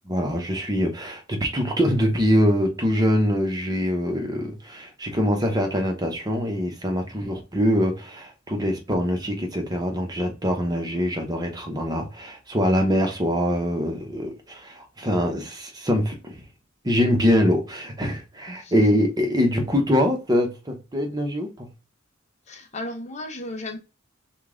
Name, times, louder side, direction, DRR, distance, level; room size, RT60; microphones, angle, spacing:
voice 1, 0.1-16.3 16.8-21.7, equal, 20° right, 0.9 m, -24 dB
voice 2, 18.5-19.0 22.5-23.8, left 1 dB, 35° left, 0.7 m, -34 dB
5.2 x 2.4 x 3.8 m
head